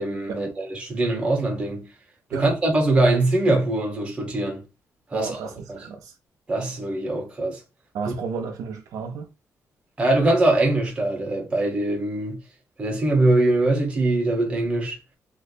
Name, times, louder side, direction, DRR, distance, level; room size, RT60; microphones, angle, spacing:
voice 1, 0.0-1.9 2.4-4.6 5.1-5.4 5.7-5.8 6.5-7.6 8.1-8.2 10.0-12.4 12.8-14.9, right 2 dB, 20° right, 0.9 m, -22 dB
voice 2, 5.1-6.1 7.9-9.3, right 5 dB, 85° right, 0.6 m, -32 dB
3.0 x 2.1 x 4.0 m
cardioid pair, 170°, 6 cm